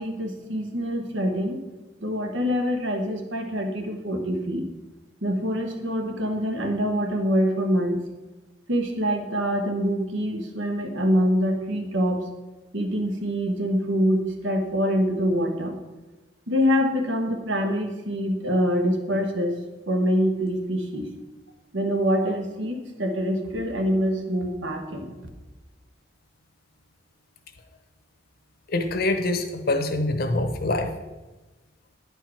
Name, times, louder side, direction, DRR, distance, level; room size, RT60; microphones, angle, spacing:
voice 1, 0.0-1.6 2.0-4.7 5.2-8.0 8.7-12.3 12.7-15.8 16.5-19.6 19.9-21.1 21.7-25.2, equal, 85° right, 4 dB, 1.3 m, -25 dB
voice 2, 28.7-30.9, left 2 dB, 55° left, 6 dB, 0.9 m, -25 dB
9.9 x 4.6 x 5.8 m, 1.1 s
head